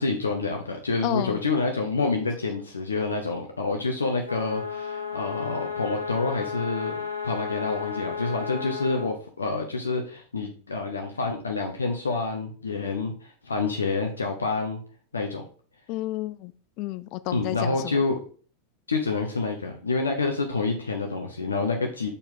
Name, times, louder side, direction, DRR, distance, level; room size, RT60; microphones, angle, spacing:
voice 1, 0.0-7.0 7.2-14.8 15.1-15.4 17.3-18.2 18.9-22.1, left 3 dB, 75° left, 3 dB, 0.8 m, -28 dB
voice 2, 1.0-1.4 15.9-16.5 16.8-18.0, left 15 dB, 40° left, 14 dB, 0.3 m, -31 dB
sound 1, 4.2-9.1, left 6 dB, 85° right, 1.0 m, -33 dB
6.8 x 4.4 x 3.6 m, 0.43 s
figure-of-eight pair, 90°, 0 cm